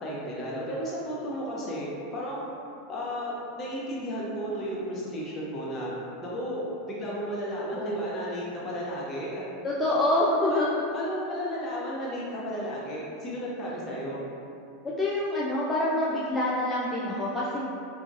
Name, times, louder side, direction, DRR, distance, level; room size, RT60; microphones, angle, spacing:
voice 1, 0.0-2.5 2.9-5.9 6.2-9.4 10.5-10.7 10.9-14.2, equal, 30° left, -6 dB, 0.8 m, -33 dB
voice 2, 7.7-8.0 9.6-10.8 14.8-17.6, left 1 dB, 15° left, -7 dB, 0.4 m, -26 dB
3.8 x 2.4 x 2.5 m, 2.7 s
figure-of-eight pair, 85°, 0 cm